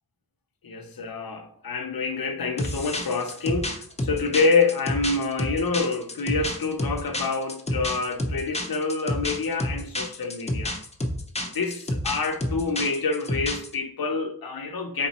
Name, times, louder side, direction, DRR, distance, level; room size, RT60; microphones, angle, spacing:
voice 1, 0.6-10.8 11.5-15.1, left 4 dB, 60° left, 0.7 m, -27 dB
sound 1, 2.6-13.7, left 1 dB, 15° left, 0.5 m, -29 dB
4.0 x 3.7 x 2.8 m
wide cardioid pair, 60°, 40 cm